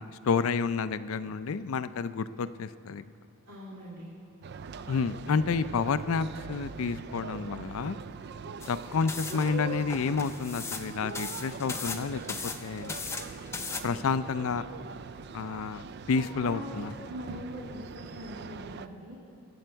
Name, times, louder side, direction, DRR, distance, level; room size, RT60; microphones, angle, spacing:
voice 1, 0.0-3.0 4.9-8.0 8.7-12.9 13.8-14.6 15.3-16.9, left 5 dB, 70° left, 14 dB, 0.4 m, -30 dB
voice 2, 3.5-4.1 16.1-19.2, equal, 90° right, -5 dB, 2.0 m, -42 dB
sound 1, 4.4-18.9, right 6 dB, 50° right, 0.3 m, -42 dB
sound 2, 8.6-13.8, left 4 dB, 10° left, 0.5 m, -38 dB
21.0 x 7.8 x 4.6 m, 2.5 s
head